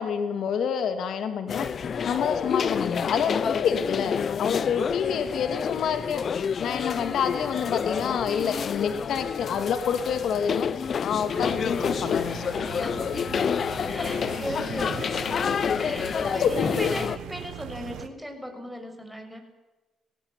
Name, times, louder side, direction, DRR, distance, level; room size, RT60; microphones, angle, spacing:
voice 1, 0.0-1.7 2.1-12.4 16.4-16.9, left 7 dB, 70° left, 8 dB, 2.6 m, -28 dB
sound 1, 1.5-17.2, left 7 dB, 50° left, 0.8 m, -29 dB
sound 2, 11.4-18.1, right 11 dB, 85° right, 1.5 m, -40 dB
voice 2, 12.8-13.6 13.9-15.5 15.8-19.4, equal, ahead, 5 dB, 6.8 m, -38 dB
19.5 x 18.5 x 9.9 m, 1.2 s
cardioid pair, 90°, 0 cm